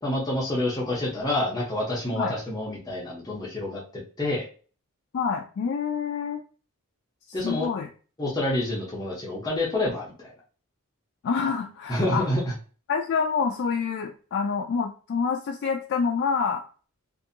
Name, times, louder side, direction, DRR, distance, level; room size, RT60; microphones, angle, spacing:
voice 1, 0.0-4.5 7.3-7.7 8.2-10.3 11.9-12.4, left 1 dB, 20° left, -4 dB, 0.7 m, -28 dB
voice 2, 5.1-6.4 7.4-7.9 11.2-12.3 12.9-16.6, left 5 dB, 55° left, 1 dB, 0.3 m, -27 dB
2.6 x 2.6 x 2.5 m, 0.38 s
head